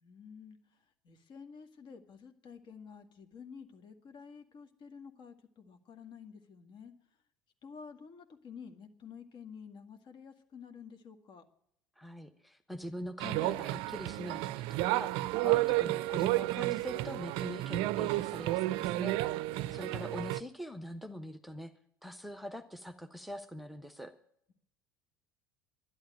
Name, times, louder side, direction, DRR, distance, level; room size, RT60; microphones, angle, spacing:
voice 1, 0.0-0.6 1.0-6.9 7.6-11.4 19.6-20.2, left 6 dB, 45° left, 7 dB, 1.9 m, -51 dB
voice 2, 12.0-19.4 19.7-21.7 22.0-24.1, equal, ahead, 8 dB, 1.0 m, -43 dB
sound 1, 13.2-20.4, right 18 dB, 55° right, 0.5 m, -31 dB
11.5 x 11.0 x 8.9 m, 0.71 s
hypercardioid pair, 70°, 11 cm